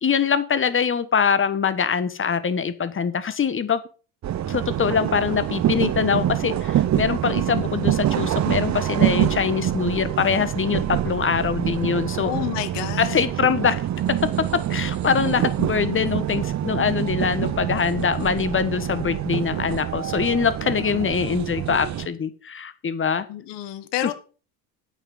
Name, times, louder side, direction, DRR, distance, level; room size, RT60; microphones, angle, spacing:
voice 1, 0.0-3.8 4.5-12.3 13.0-13.8 14.2-23.3 24.0-24.1, left 6 dB, 25° left, 13 dB, 1.4 m, -23 dB
sound 1, 4.2-22.1, right 11 dB, 35° right, 0.9 m, -25 dB
voice 2, 12.2-13.3 23.3-24.1, left 13 dB, 60° left, 11 dB, 1.6 m, -29 dB
9.1 x 6.0 x 6.7 m, 0.37 s
supercardioid pair, 95°, 47 cm